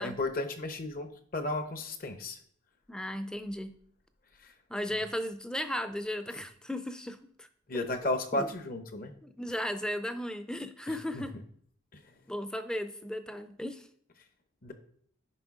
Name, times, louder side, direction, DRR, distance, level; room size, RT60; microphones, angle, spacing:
voice 1, 0.0-2.4 4.4-4.5 7.7-9.1 11.1-11.4 11.9-12.0 14.6-14.7, left 2 dB, 45° left, 8 dB, 0.8 m, -34 dB
voice 2, 2.9-3.7 4.7-7.5 8.3-8.5 9.2-11.4 12.3-13.9, left 1 dB, 5° left, 9 dB, 0.4 m, -36 dB
9.9 x 5.4 x 3.6 m, 0.63 s
head